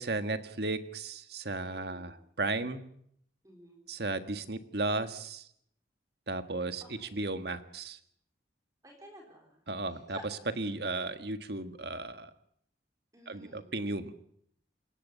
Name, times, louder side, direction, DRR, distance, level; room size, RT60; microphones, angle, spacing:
voice 1, 0.0-2.8 3.9-5.5 6.3-8.0 9.7-10.2 10.6-12.3 13.3-14.1, right 2 dB, 60° right, 9 dB, 1.6 m, -35 dB
voice 2, 1.8-2.1 3.4-3.8 6.8-7.3 8.8-10.2 13.1-13.7, right 1 dB, 20° right, 1 dB, 4.2 m, -53 dB
28.0 x 16.5 x 7.0 m, 0.68 s
head